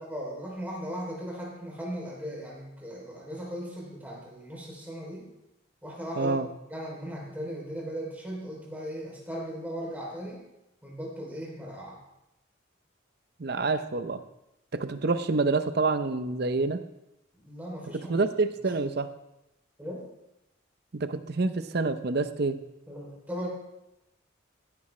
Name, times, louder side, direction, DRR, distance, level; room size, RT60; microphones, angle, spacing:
voice 1, 0.1-5.3 5.8-6.4 6.7-10.4 10.8-12.0 17.4-18.1 19.8-20.1 22.9-23.5, equal, 10° right, -3 dB, 3.1 m, -37 dB
voice 2, 6.2-6.5 13.4-14.2 14.7-16.8 17.9-19.1 20.9-22.6, right 3 dB, 50° right, 11 dB, 0.6 m, -27 dB
16.0 x 9.6 x 3.2 m, 0.90 s
head